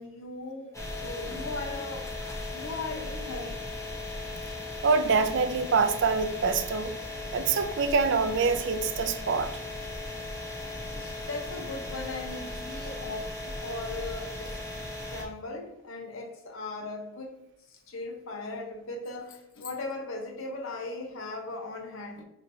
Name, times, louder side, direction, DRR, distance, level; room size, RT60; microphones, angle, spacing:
voice 1, 0.0-2.1 2.5-3.7 10.9-14.6 15.1-17.4 17.7-22.2, left 3 dB, 85° left, 0.7 m, -38 dB
sound 1, 0.7-15.2, left 2 dB, 15° left, 0.7 m, -37 dB
voice 2, 4.8-6.9 7.3-9.5, right 4 dB, 60° right, 0.4 m, -25 dB
5.3 x 2.9 x 2.6 m
head